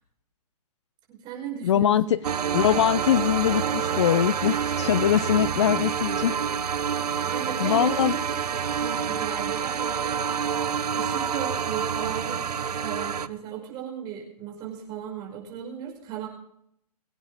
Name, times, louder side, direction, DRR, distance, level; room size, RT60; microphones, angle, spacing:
voice 1, 1.1-2.2 7.3-8.2 8.5-10.4 10.9-12.4 12.7-16.3, right 9 dB, 20° right, 0 dB, 5.3 m, -36 dB
voice 2, 1.6-2.2 2.5-6.4 7.6-8.2, left 10 dB, 45° left, 18 dB, 0.5 m, -22 dB
sound 1, 2.2-13.3, right 7 dB, 75° right, 1.0 m, -27 dB
23.5 x 9.7 x 3.5 m, 0.72 s
hypercardioid pair, 155°, 20 cm